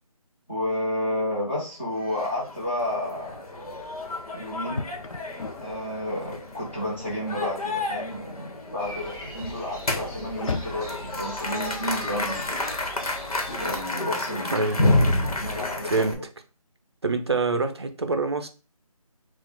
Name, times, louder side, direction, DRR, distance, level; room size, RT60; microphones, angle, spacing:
voice 1, 0.5-3.4 4.3-4.9 5.5-12.4 13.6-14.6 15.2-16.2, left 1 dB, 20° left, -7 dB, 1.4 m, -31 dB
sound 1, 2.0-16.1, left 2 dB, 75° left, 1.2 m, -30 dB
sound 2, 3.2-12.9, left 4 dB, 60° left, 0.5 m, -41 dB
sound 3, 8.8-13.8, equal, 40° left, 1.7 m, -41 dB
voice 2, 14.5-14.9 15.4-15.6 15.8-16.2 17.0-18.5, right 3 dB, 45° right, 7 dB, 0.6 m, -25 dB
4.7 x 2.4 x 3.7 m, 0.35 s
figure-of-eight pair, 180°, 19 cm